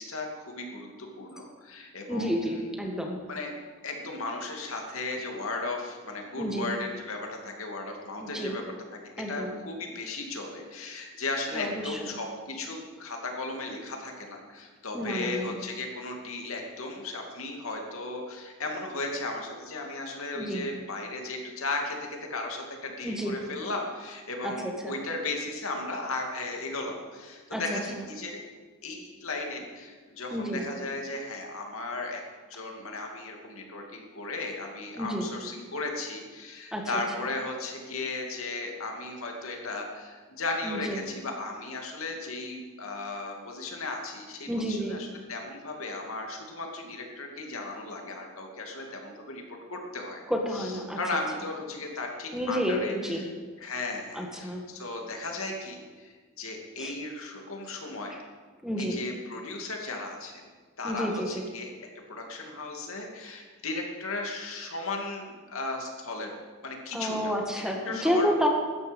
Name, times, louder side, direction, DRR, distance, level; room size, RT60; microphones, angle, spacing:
voice 1, 0.0-2.6 3.3-3.5 3.8-8.6 9.2-28.4 28.8-32.2 32.5-49.4 49.7-50.2 50.5-53.3 53.6-58.2 58.8-60.4 60.8-61.7 62.1-66.3 66.6-67.2 67.9-68.5, left 2 dB, 70° left, 1 dB, 2.6 m, -36 dB
voice 2, 2.1-3.2 6.4-6.7 8.2-8.6 9.2-9.6 11.5-12.2 14.9-15.6 20.3-20.7 23.0-23.4 24.4-25.0 27.5-28.0 30.3-30.7 35.0-35.3 36.7-37.0 40.6-41.0 44.5-45.0 50.3-51.0 52.3-53.3 54.1-54.6 56.8-56.9 58.6-59.0 60.8-61.5 66.9-68.5, equal, 5° right, 1 dB, 1.7 m, -30 dB
16.5 x 13.0 x 5.4 m, 1.5 s
head